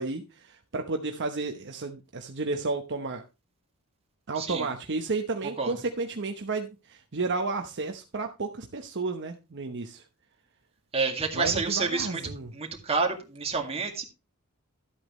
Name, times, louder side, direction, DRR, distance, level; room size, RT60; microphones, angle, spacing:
voice 1, 0.0-3.2 4.3-10.0 11.3-12.5, right 3 dB, 55° right, 4 dB, 0.9 m, -32 dB
voice 2, 4.4-4.7 5.6-5.7 10.9-12.2 12.5-14.0, right 4 dB, 30° right, 2 dB, 2.1 m, -28 dB
12.5 x 8.4 x 3.1 m, 0.28 s
head